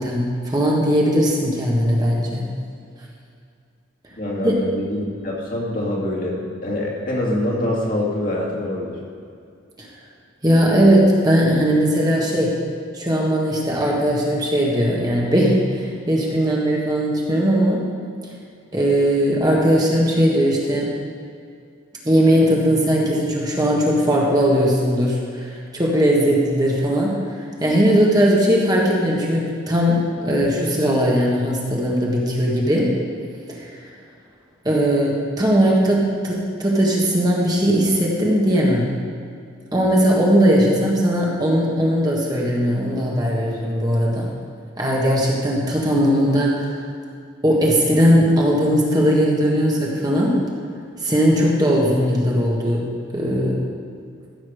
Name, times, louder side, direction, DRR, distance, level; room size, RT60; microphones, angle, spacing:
voice 1, 0.0-2.5 4.4-4.5 9.8-9.9 10.4-12.5 12.9-17.9 18.7-20.9 22.0-32.9 33.5-33.7 34.6-38.9 39.7-44.3 44.8-46.8 47.4-50.4 51.0-52.8 53.1-53.6, equal, 20° right, -3 dB, 1.5 m, -19 dB
voice 2, 4.2-9.0, left 1 dB, 45° left, -3 dB, 2.3 m, -25 dB
14.5 x 7.4 x 5.0 m, 2.4 s
head